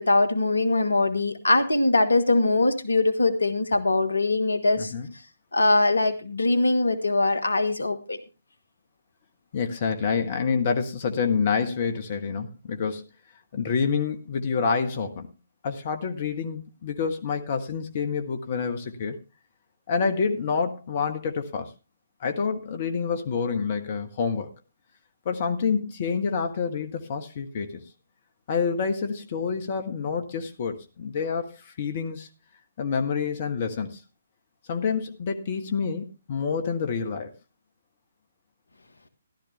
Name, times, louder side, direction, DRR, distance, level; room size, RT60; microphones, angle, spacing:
voice 1, 0.0-4.9 5.5-8.2, left 2 dB, 75° left, 11 dB, 1.5 m, -22 dB
voice 2, 4.8-5.1 9.5-13.0 13.5-15.3 15.6-19.2 19.9-21.7 22.2-24.5 25.2-27.8 28.5-32.3 32.8-34.0 34.7-37.3, left 5 dB, 40° left, 7 dB, 1.4 m, -27 dB
14.5 x 12.0 x 3.3 m, 0.29 s
figure-of-eight pair, 135°, 0 cm